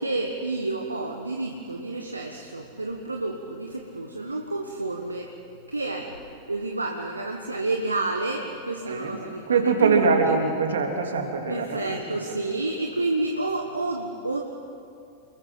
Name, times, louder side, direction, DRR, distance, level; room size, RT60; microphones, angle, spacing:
voice 1, 0.0-5.3 5.7-6.2 6.5-10.4 11.5-14.5, right 2 dB, 80° right, 2 dB, 1.4 m, -30 dB
voice 2, 8.9-9.2 9.5-12.0, right 4 dB, 65° right, 3 dB, 3.0 m, -23 dB
28.5 x 21.5 x 5.8 m, 2.5 s
figure-of-eight pair, 90°, 0 cm